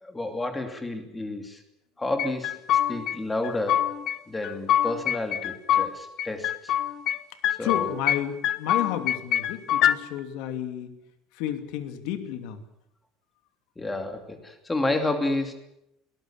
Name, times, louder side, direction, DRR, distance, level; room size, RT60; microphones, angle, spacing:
voice 1, 0.0-1.6 2.0-2.6 2.9-3.9 4.3-6.7 7.6-7.9 13.8-15.6, left 2 dB, 10° left, 6 dB, 2.7 m, -30 dB
sound 1, 2.2-3.2 3.4-4.2 4.4-5.9 6.2-7.2 7.4-8.2 8.4-10.0, left 11 dB, 40° left, 1.1 m, -24 dB
voice 2, 7.6-11.0 11.3-12.6, left 11 dB, 65° left, 8 dB, 2.8 m, -32 dB
22.0 x 19.5 x 8.9 m, 0.81 s
cardioid pair, 175°, 0 cm